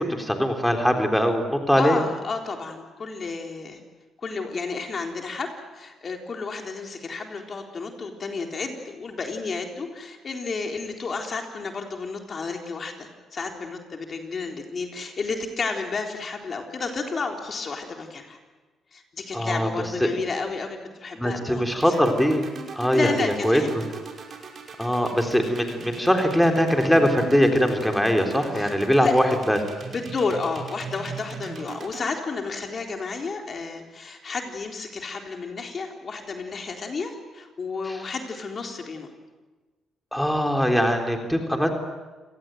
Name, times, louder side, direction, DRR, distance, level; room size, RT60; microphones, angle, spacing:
voice 1, 0.0-2.0 19.3-19.7 20.0-20.1 21.2-22.4 22.7-23.8 24.8-29.6 37.9-38.0 40.1-41.7, equal, 5° left, 3 dB, 3.7 m, -22 dB
voice 2, 1.8-3.8 4.2-18.4 18.9-22.0 22.9-23.7 28.5-28.7 29.0-29.1 29.9-39.1, left 4 dB, 45° left, 3 dB, 3.9 m, -31 dB
sound 1, 21.7-32.0, right 5 dB, 55° right, 5.5 m, -38 dB
29.0 x 18.5 x 9.2 m, 1.3 s
cardioid pair, 90°, 0 cm